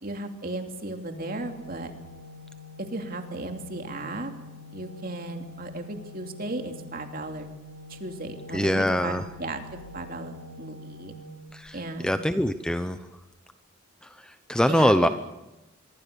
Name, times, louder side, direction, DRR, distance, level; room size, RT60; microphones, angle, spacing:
voice 1, 0.0-1.9 2.8-4.3 4.7-7.5 7.9-11.1 11.7-12.1 14.6-15.1, right 2 dB, 45° right, 5 dB, 2.9 m, -35 dB
Organ, 1.1-12.0, left 2 dB, 45° left, 3.3 m, -45 dB
voice 2, 8.5-9.2 11.5-11.8 12.0-13.0 14.3-15.1, equal, 5° left, 9 dB, 0.7 m, -23 dB
25.0 x 23.5 x 7.0 m, 0.98 s
head